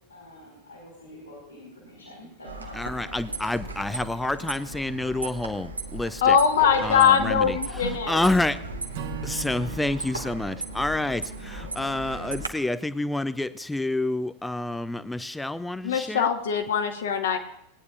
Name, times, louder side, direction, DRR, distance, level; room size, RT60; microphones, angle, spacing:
voice 1, 0.1-3.1 6.6-8.3, left 2 dB, 80° left, -3 dB, 4.2 m, -39 dB
sound 1, 2.4-12.5, right 3 dB, 80° right, 1.1 m, -36 dB
voice 2, 2.7-6.4 6.8-7.6 8.1-8.6 9.2-16.3, left 2 dB, 5° left, 14 dB, 0.5 m, -28 dB
voice 3, 6.2-8.2 15.8-17.4, left 7 dB, 60° left, 4 dB, 1.4 m, -22 dB
Acoustic guitar / Strum, 8.9-12.3, right 7 dB, 50° right, 1.4 m, -41 dB
19.5 x 9.4 x 2.5 m, 0.78 s
figure-of-eight pair, 90°, 0 cm